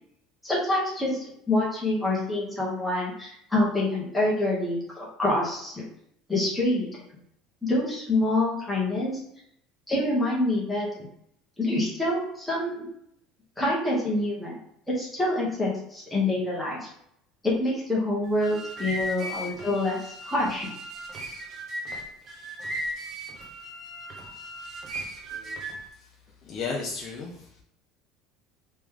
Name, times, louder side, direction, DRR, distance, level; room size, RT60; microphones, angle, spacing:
voice 1, 0.4-1.2 1.5-5.8 6.3-7.0 7.6-9.1 9.9-10.9 11.6-12.9 13.6-14.6 15.0-16.8 17.4-20.7, left 1 dB, 5° left, -6 dB, 1.1 m, -26 dB
sound 1, 18.2-25.9, equal, 35° right, 0.9 m, -37 dB
voice 2, 26.4-27.6, left 4 dB, 35° left, -2 dB, 0.6 m, -34 dB
3.3 x 3.0 x 3.6 m, 0.71 s
cardioid pair, 155°, 0 cm